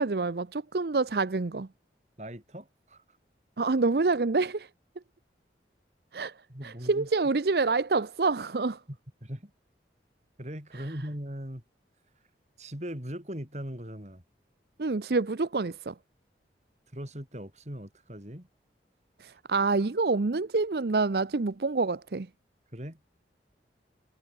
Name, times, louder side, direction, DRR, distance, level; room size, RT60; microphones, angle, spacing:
voice 1, 0.0-1.7 3.6-4.7 6.1-6.3 6.6-8.8 10.7-10.9 14.8-15.9 19.2-22.3, right 3 dB, 65° right, 0.7 m, -27 dB
voice 2, 2.2-3.0 6.5-7.1 8.9-9.5 10.4-11.6 12.6-14.2 16.9-18.5 22.7-23.0, equal, 40° right, 4.4 m, -39 dB
head